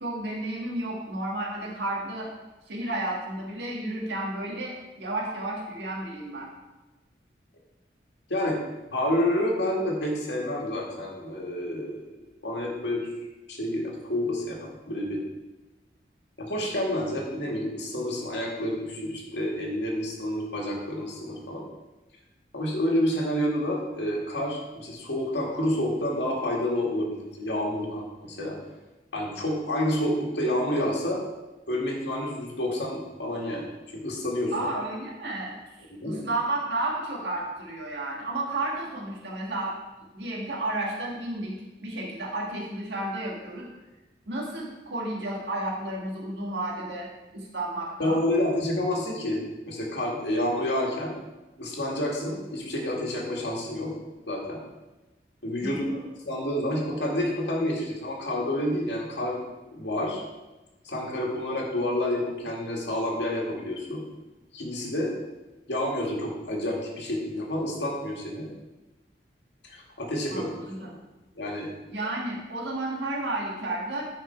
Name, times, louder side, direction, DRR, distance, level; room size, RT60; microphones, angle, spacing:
voice 1, 0.0-2.3 2.7-6.5 34.5-35.5 36.0-39.8 40.1-41.5 41.8-43.7 44.3-47.1 47.3-48.2 55.6-56.1 70.3-71.0 71.9-74.0, right 2 dB, 85° right, -3 dB, 1.7 m, -32 dB
voice 2, 8.3-8.6 8.9-12.1 12.4-13.1 13.5-15.2 16.4-21.6 22.5-28.6 29.1-31.2 31.7-34.5 36.0-36.2 48.0-51.2 51.6-53.9 54.3-54.6 55.4-56.0 56.3-59.4 59.7-60.2 60.8-64.0 64.5-65.1 65.7-68.5 69.6-70.5 71.4-71.7, left 1 dB, 85° left, -2 dB, 1.9 m, -29 dB
9.9 x 4.5 x 4.4 m, 1.1 s
head